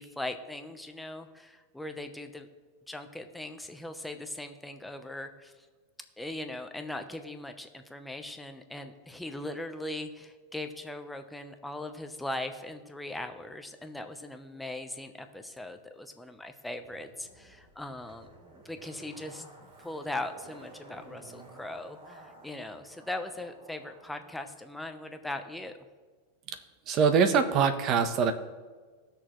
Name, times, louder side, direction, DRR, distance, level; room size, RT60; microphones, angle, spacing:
voice 1, 0.0-2.5 2.9-5.7 6.2-19.4 19.8-25.7, left 1 dB, 5° left, 6 dB, 0.8 m, -39 dB
Zipper (clothing), 16.8-24.4 24.7-24.8, right 2 dB, 65° right, 3.4 m, -53 dB
voice 2, 26.9-28.3, right 6 dB, 40° right, 9 dB, 1.0 m, -23 dB
18.5 x 6.5 x 3.1 m, 1.4 s
supercardioid pair, 135°, 0 cm